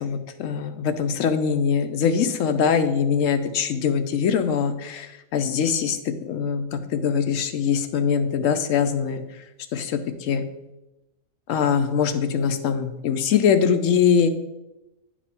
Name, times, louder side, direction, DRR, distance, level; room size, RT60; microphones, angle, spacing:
voice 1, 0.0-9.2 9.7-10.4 11.5-14.3, left 7 dB, 75° left, 8 dB, 1.0 m, -22 dB
9.4 x 4.9 x 3.5 m, 0.96 s
omnidirectional pair, 1.4 m